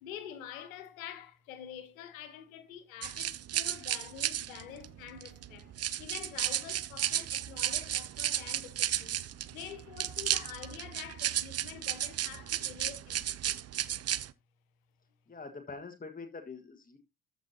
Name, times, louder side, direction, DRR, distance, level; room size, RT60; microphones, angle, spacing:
voice 1, 0.0-5.7 6.0-9.2 9.5-13.6, left 10 dB, 80° left, 1.2 m, -47 dB
sound 1, 3.0-14.3, right 11 dB, 40° right, 0.6 m, -34 dB
voice 2, 15.3-17.0, left 4 dB, 20° left, 1.6 m, -44 dB
13.5 x 5.8 x 2.8 m
figure-of-eight pair, 45°, 40 cm